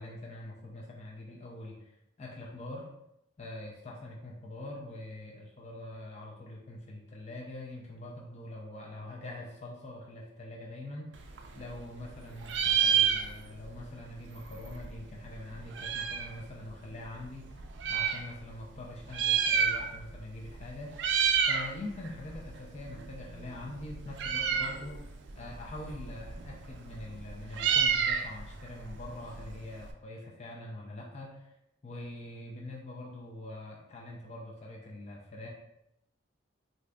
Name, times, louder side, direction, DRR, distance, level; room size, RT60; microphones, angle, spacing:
voice 1, 0.0-2.9 3.4-11.3 11.5-17.5 17.9-20.9 21.5-25.0 25.3-31.6 31.8-35.5, left 1 dB, 35° left, -2 dB, 0.4 m, -44 dB
Meow, 11.2-12.1 12.4-13.7 14.0-14.1 14.2-16.4 17.0-18.2 19.0-20.2 20.4-20.7 20.9-21.7 22.0-29.9, right 7 dB, 65° right, 0.3 m, -30 dB
3.3 x 2.6 x 2.4 m, 0.82 s
head